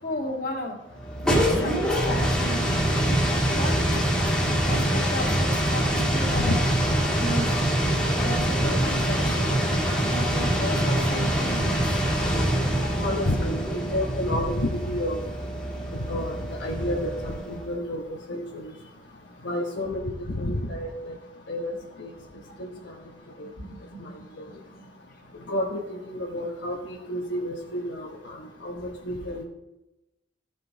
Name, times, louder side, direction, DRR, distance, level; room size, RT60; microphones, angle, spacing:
voice 1, 0.0-0.8 1.2-2.8 3.5-6.7 7.2-7.5 8.2-9.6 10.1-11.8 22.3-22.4 23.4-24.9, left 1 dB, 55° left, -1 dB, 2.2 m, -35 dB
sound 1, 1.0-17.7, right 1 dB, 5° left, 1.8 m, -25 dB
voice 2, 13.0-13.6 13.9-15.2 16.1-18.7 19.4-20.9 21.5-21.7 22.0-22.1 22.6-22.7 23.4-23.5 25.5-28.3 28.6-29.4, left 1 dB, 85° left, -1 dB, 1.1 m, -30 dB
14.5 x 5.3 x 4.0 m, 0.96 s
head